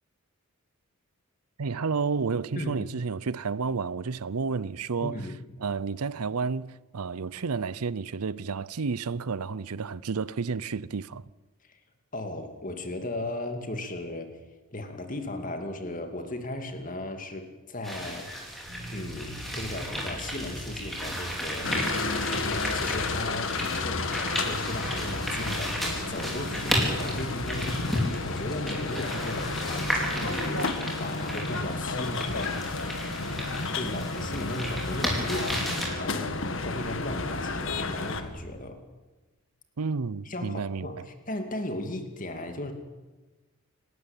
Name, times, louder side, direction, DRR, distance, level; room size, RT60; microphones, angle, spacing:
voice 1, 1.6-5.2 5.6-11.2 39.8-41.0, right 5 dB, 90° right, 0.7 m, -31 dB
voice 2, 2.6-2.9 5.0-5.4 11.7-11.8 12.1-14.4 14.7-18.6 18.9-33.3 33.7-38.8 40.2-42.7, left 1 dB, 35° left, 2.5 m, -36 dB
sound 1, 17.8-35.9, equal, ahead, 4.8 m, -34 dB
sound 2, 18.6-38.5, equal, 35° right, 5.4 m, -43 dB
sound 3, 21.6-38.2, left 3 dB, 60° left, 1.7 m, -32 dB
29.0 x 12.5 x 9.0 m
head